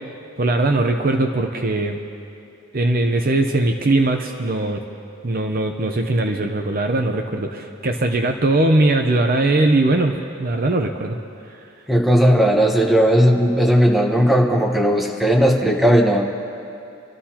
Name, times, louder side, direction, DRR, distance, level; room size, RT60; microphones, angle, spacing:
voice 1, 0.4-2.0 2.7-4.8 5.2-10.1 10.4-11.2, right 2 dB, 45° right, 4 dB, 0.7 m, -20 dB
voice 2, 11.9-16.3, equal, ahead, 0 dB, 1.2 m, -16 dB
28.0 x 13.0 x 2.9 m, 2.7 s
head